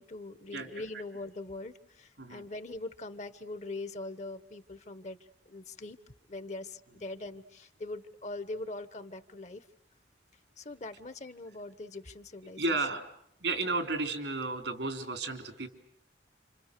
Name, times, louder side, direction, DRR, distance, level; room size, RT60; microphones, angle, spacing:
voice 1, 0.0-5.2 5.5-6.0 6.3-9.6 10.6-12.6, left 2 dB, 40° left, 12 dB, 1.2 m, -42 dB
voice 2, 0.5-0.8 2.2-2.4 12.6-13.1 13.4-15.7, right 3 dB, 85° right, 6 dB, 3.6 m, -33 dB
30.0 x 27.0 x 6.8 m, 0.76 s
head